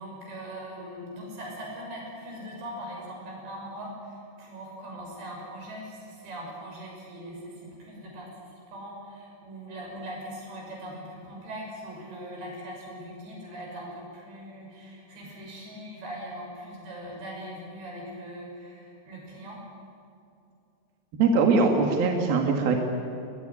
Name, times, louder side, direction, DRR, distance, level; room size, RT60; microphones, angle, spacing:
voice 1, 0.0-19.6, equal, 85° right, -1 dB, 8.6 m, -41 dB
voice 2, 21.2-22.8, right 4 dB, 65° right, 2 dB, 3.5 m, -21 dB
21.0 x 21.0 x 9.8 m, 2.6 s
omnidirectional pair, 4.9 m